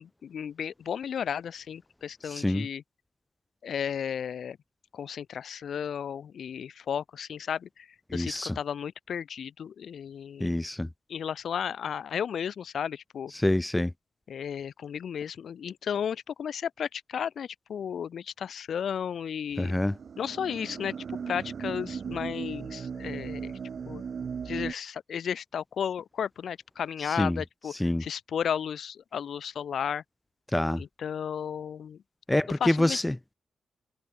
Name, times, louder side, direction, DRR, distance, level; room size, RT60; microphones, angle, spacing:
voice 1, 0.0-2.8 3.6-4.6 4.9-10.6 11.1-13.3 14.3-19.8 20.2-23.6 23.9-24.0 24.4-30.0 30.8-32.0 32.6-33.0, left 8 dB, 70° left, 1.0 m, -34 dB
voice 2, 2.3-2.7 8.1-8.6 10.4-10.9 13.4-13.9 19.6-19.9 27.2-27.4 27.8-28.0 30.5-30.8 32.3-33.1, left 1 dB, 10° left, 0.5 m, -26 dB
sound 1, 19.5-24.7, right 6 dB, 55° right, 1.8 m, -37 dB
wide cardioid pair, 130°, 0 cm